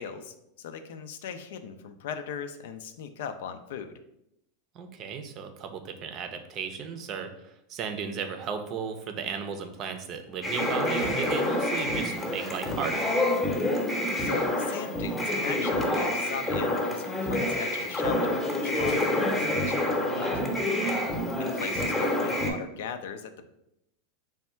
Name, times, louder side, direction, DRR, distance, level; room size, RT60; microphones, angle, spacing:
voice 1, 0.0-3.9 14.2-20.4 21.4-23.5, left 7 dB, 75° left, 9 dB, 0.4 m, -38 dB
voice 2, 4.7-13.1 20.8-21.0, right 6 dB, 40° right, 7 dB, 0.5 m, -35 dB
sound 1, 10.4-22.5, left 1 dB, 15° left, 0.8 m, -27 dB
3.5 x 2.2 x 4.3 m, 0.82 s
hypercardioid pair, 115°, 0 cm